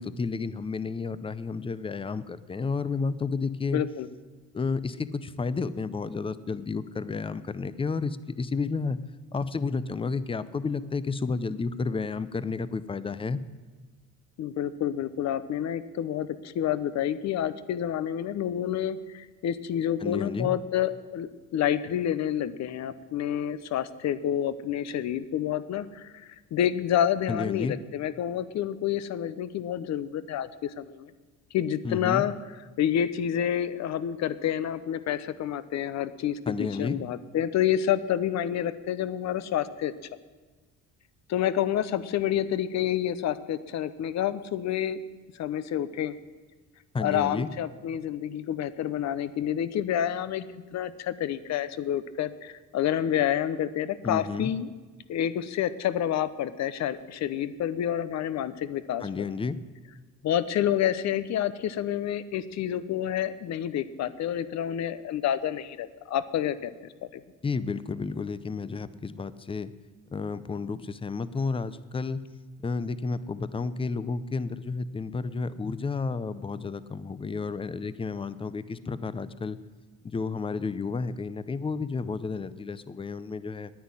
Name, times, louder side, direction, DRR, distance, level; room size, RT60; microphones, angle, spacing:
voice 1, 0.0-3.8 4.5-9.0 9.3-13.4 20.0-20.5 27.3-27.8 31.8-32.2 36.5-37.0 46.9-47.5 54.0-54.5 59.0-59.6 67.4-69.7 70.1-72.2 72.6-79.6 80.0-83.7, left 4 dB, 15° left, 15 dB, 0.6 m, -31 dB
voice 2, 3.7-4.1 14.4-31.1 31.5-32.3 32.8-39.9 41.3-45.0 45.4-46.1 47.0-50.4 50.7-54.7 55.1-59.3 60.2-67.2, left 10 dB, 55° left, 15 dB, 0.8 m, -28 dB
10.5 x 9.5 x 9.8 m, 1.3 s
cardioid pair, 110°, 33 cm